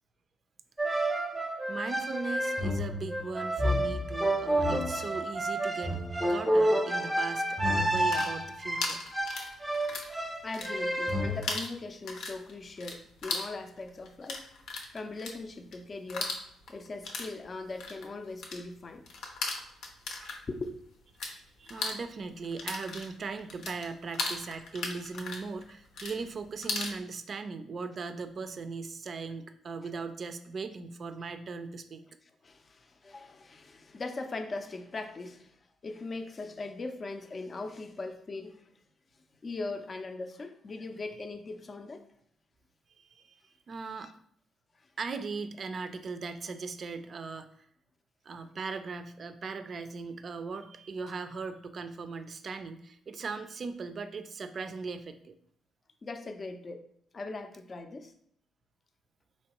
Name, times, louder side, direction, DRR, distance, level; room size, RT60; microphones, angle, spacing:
sound 1, 0.8-11.4, right 1 dB, 5° right, 0.7 m, -29 dB
voice 1, 1.7-6.0 6.3-9.0 20.2-20.4 21.3-32.0 43.0-44.1 45.0-47.7 48.3-55.3, right 4 dB, 45° right, 9 dB, 0.4 m, -39 dB
sound 2, 7.9-10.1 10.4-11.1 11.4-21.3 21.6-27.0, left 3 dB, 80° left, 0.7 m, -37 dB
voice 2, 10.4-14.5 14.9-16.3 16.7-19.0 20.5-20.8 29.2-29.3 32.4-38.7 39.4-42.0 44.0-44.1 44.8-44.9 56.0-56.9 57.1-58.1, left 3 dB, 35° left, 6 dB, 0.5 m, -40 dB
4.4 x 3.1 x 2.9 m, 0.67 s
cardioid pair, 90°, 0 cm